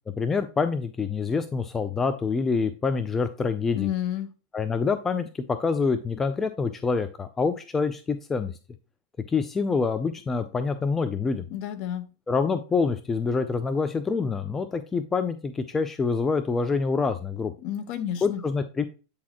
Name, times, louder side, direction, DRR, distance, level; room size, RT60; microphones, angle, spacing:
voice 1, 0.2-3.9 4.5-8.5 9.3-11.5 12.3-17.5 18.2-18.9, left 4 dB, 15° left, 0.5 m, -26 dB
voice 2, 3.7-4.3 11.5-12.1 17.6-18.4, left 10 dB, 45° left, 0.8 m, -30 dB
8.4 x 4.1 x 2.9 m
hypercardioid pair, 130°, 2 cm